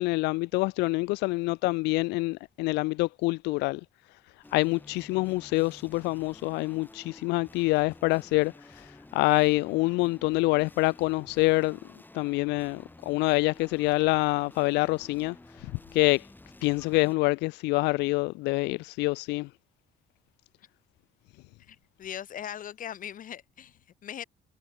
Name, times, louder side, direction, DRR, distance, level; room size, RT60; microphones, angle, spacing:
voice 1, 0.0-3.8 4.5-11.8 12.1-15.3 15.9-16.3 16.6-19.5, left 23 dB, 90° left, 0.4 m, -26 dB
sound 1, 4.4-17.1, left 2 dB, 10° left, 7.2 m, -52 dB
voice 2, 21.7-24.2, left 10 dB, 50° left, 3.3 m, -40 dB
cardioid pair, 110°, 17 cm